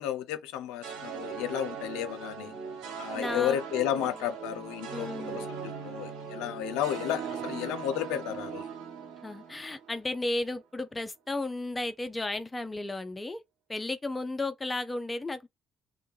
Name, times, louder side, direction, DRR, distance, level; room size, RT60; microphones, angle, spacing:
voice 1, 0.0-2.5 3.0-8.6, left 11 dB, 80° left, 0.5 m, -33 dB
sound 1, 0.8-10.1, right 6 dB, 75° right, 0.9 m, -39 dB
voice 2, 3.1-3.6 4.9-5.5 9.2-13.4 13.7-15.5, left 2 dB, 20° left, 0.5 m, -34 dB
3.2 x 2.2 x 3.1 m
hypercardioid pair, 55°, 0 cm